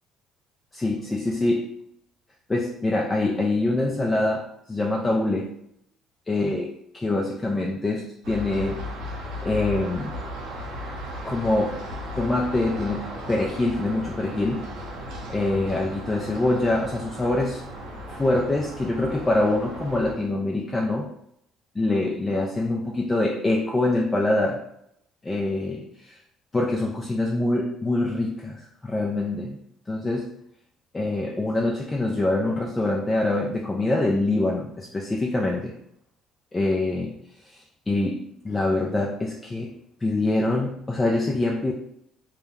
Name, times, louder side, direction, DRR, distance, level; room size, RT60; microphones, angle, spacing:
voice 1, 0.7-1.7 2.5-5.5 6.3-8.8 9.4-10.1 11.2-11.8 12.2-14.6 15.3-17.6 18.1-21.1 21.8-24.6 25.2-26.2 26.5-29.6 29.9-30.3 30.9-35.7 36.5-37.1 37.4-37.6 37.9-39.7 40.0-41.7, left 2 dB, 20° left, -1 dB, 0.4 m, -25 dB
sound 1, 8.2-20.1, equal, 80° right, 0.6 m, -36 dB
2.2 x 2.0 x 3.4 m, 0.74 s
supercardioid pair, 75°, 0 cm